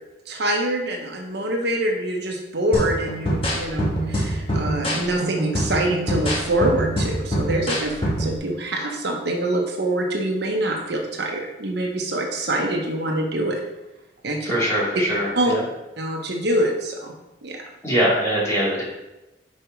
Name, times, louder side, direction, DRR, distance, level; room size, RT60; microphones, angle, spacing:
voice 1, 0.3-13.6 14.2-14.4 15.4-15.5 16.0-17.1 17.4-17.6, right 1 dB, 65° right, 0 dB, 1.0 m, -25 dB
sound 1, 2.7-8.4, equal, 35° left, 1.5 m, -25 dB
voice 2, 14.4-15.6 17.8-18.8, equal, 15° left, -7 dB, 2.6 m, -22 dB
5.4 x 5.3 x 4.5 m, 0.99 s
head